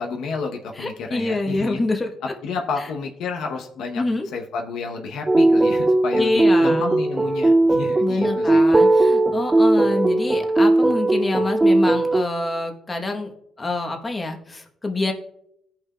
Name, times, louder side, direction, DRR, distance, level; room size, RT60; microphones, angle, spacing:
voice 1, 0.0-1.8 2.2-4.0 4.3-9.0, left 4 dB, 80° left, 2 dB, 1.0 m, -30 dB
voice 2, 0.8-2.1 3.9-4.3 6.2-6.9 8.0-13.3 13.6-15.1, left 2 dB, 25° left, 3 dB, 1.2 m, -26 dB
sound 1, 5.3-12.2, right 2 dB, 20° right, 0.3 m, -18 dB
16.5 x 5.8 x 2.4 m, 0.77 s
cardioid pair, 90°, 0 cm